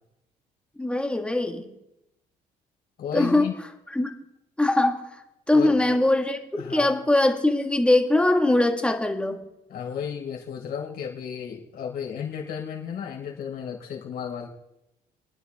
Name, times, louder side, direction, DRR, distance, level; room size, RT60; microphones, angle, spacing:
voice 1, 0.8-1.7 3.1-3.5 3.9-4.1 4.6-5.2 5.5-9.4, left 2 dB, 5° left, 4 dB, 1.7 m, -22 dB
voice 2, 3.0-3.5 5.5-5.9 6.6-6.9 9.7-14.5, left 7 dB, 65° left, -1 dB, 4.2 m, -33 dB
29.0 x 9.9 x 3.6 m, 0.89 s
cardioid pair, 110°, 17 cm